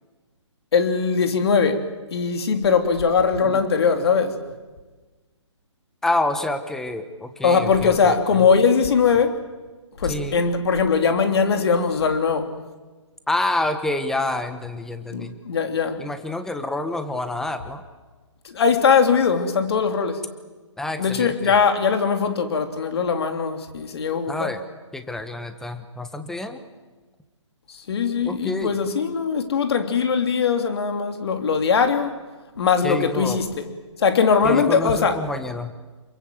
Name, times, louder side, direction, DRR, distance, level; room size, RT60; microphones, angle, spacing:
voice 1, 0.7-1.8 2.1-4.4 7.4-9.3 10.0-12.5 15.1-16.1 18.5-20.2 21.0-24.5 27.9-32.1 32.6-33.5 34.0-35.2, left 5 dB, 55° left, 3.4 m, -20 dB
voice 2, 6.0-8.4 10.0-10.4 13.3-15.3 16.0-17.8 20.8-21.6 24.3-24.6 24.9-26.6 28.2-28.7 32.8-33.4 34.4-35.7, left 2 dB, 5° left, 1.4 m, -28 dB
27.5 x 23.0 x 7.9 m
hypercardioid pair, 145°, 16 cm